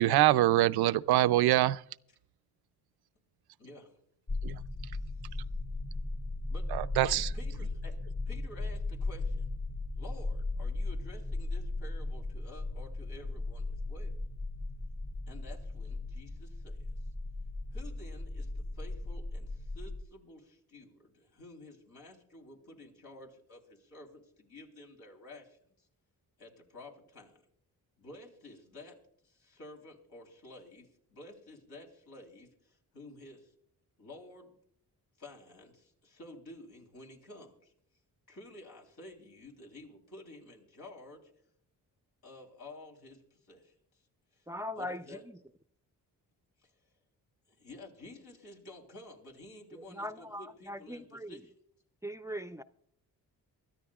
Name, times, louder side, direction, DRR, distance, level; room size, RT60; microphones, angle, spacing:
voice 1, 0.0-1.8 4.4-4.5 7.0-7.3, right 15 dB, 85° right, 0.5 m, -24 dB
voice 2, 3.6-3.9 6.5-8.0 8.3-9.5 9.9-14.1 15.3-16.9 17.7-25.7 26.4-27.4 28.0-29.0 29.2-33.5 34.0-34.5 35.2-37.7 38.3-41.3 42.2-43.7 44.3-44.5 44.7-45.2 46.6-46.7 47.5-51.5 52.3-52.4, left 2 dB, 85° left, 3.5 m, -51 dB
sound 1, 4.3-20.0, left 2 dB, 40° left, 2.1 m, -37 dB
voice 3, 44.5-45.0 49.7-51.4 52.0-52.6, equal, 10° right, 0.4 m, -40 dB
24.0 x 13.5 x 2.4 m
cardioid pair, 75°, 37 cm